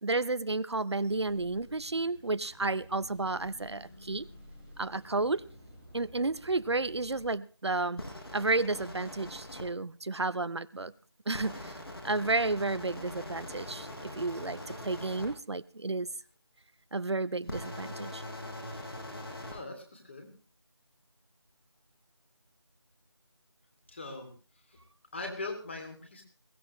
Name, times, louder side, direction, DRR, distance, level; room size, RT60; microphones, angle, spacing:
voice 1, 0.0-4.3 4.8-5.4 5.9-8.0 8.3-10.9 11.3-11.8 12.0-13.9 14.2-16.1 16.9-18.2, right 3 dB, 70° right, 16 dB, 0.7 m, -32 dB
sound 1, 0.9-7.3, left 1 dB, 5° left, 1.5 m, -53 dB
sound 2, 8.0-9.6 11.3-15.3 17.4-19.6, left 1 dB, 60° left, 6.8 m, -42 dB
voice 2, 19.5-20.3 23.9-24.3 24.7-24.8 25.1-26.2, left 2 dB, 25° left, 4 dB, 2.8 m, -40 dB
21.5 x 16.5 x 3.1 m, 0.37 s
figure-of-eight pair, 170°, 15 cm